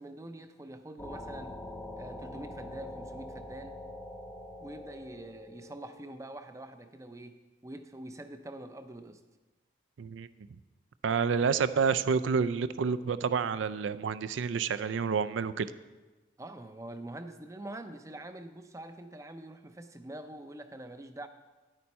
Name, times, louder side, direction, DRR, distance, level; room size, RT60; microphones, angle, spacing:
voice 1, 0.0-1.6 2.0-3.8 4.6-9.2 16.4-21.3, right 1 dB, 15° right, 10 dB, 0.4 m, -45 dB
sound 1, 1.0-6.4, left 1 dB, 15° left, 0.7 m, -44 dB
voice 2, 11.0-15.7, right 6 dB, 80° right, 14 dB, 0.4 m, -29 dB
10.5 x 8.9 x 4.2 m, 1.2 s
head